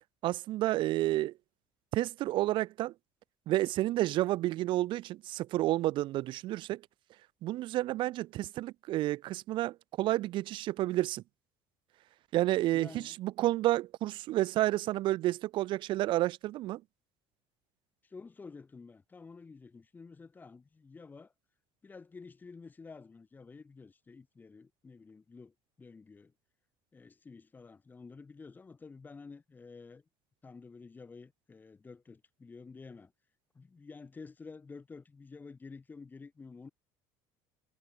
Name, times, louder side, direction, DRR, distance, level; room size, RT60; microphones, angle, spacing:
voice 1, 0.2-1.3 1.9-2.9 3.5-6.8 7.4-11.2 12.3-16.8, right 16 dB, 55° right, 0.8 m, -30 dB
voice 2, 12.7-13.2 18.0-21.3 21.8-26.3 26.9-30.0 30.4-33.1 33.5-36.7, left 4 dB, 20° left, 4.8 m, -50 dB
cardioid pair, 135°, 10 cm